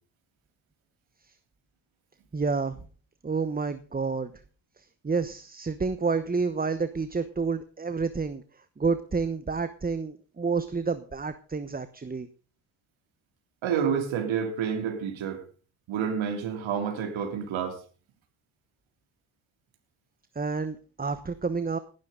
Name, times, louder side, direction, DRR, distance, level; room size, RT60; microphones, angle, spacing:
voice 1, 2.3-2.8 3.2-4.3 4.8-12.3 20.3-21.8, right 4 dB, 20° right, 1.1 m, -29 dB
voice 2, 13.6-15.4 15.9-17.8, right 7 dB, 75° right, 3.4 m, -29 dB
19.0 x 12.0 x 4.0 m
cardioid pair, 85°, 47 cm